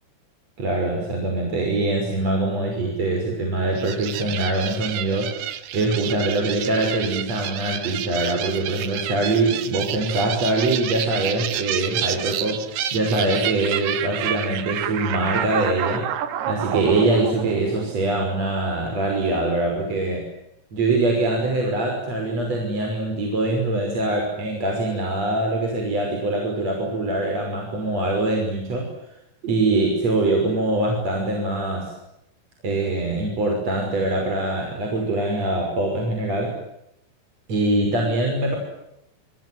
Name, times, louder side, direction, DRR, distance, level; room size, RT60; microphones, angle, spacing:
voice 1, 0.6-5.4 5.7-16.1 16.5-20.2 20.7-28.9 29.4-31.9 32.6-36.5 37.5-38.6, right 2 dB, 35° right, 1 dB, 6.7 m, -23 dB
sound 1, 3.8-18.4, right 11 dB, 70° right, 3.3 m, -29 dB
28.0 x 26.5 x 7.9 m, 0.82 s
omnidirectional pair, 5.4 m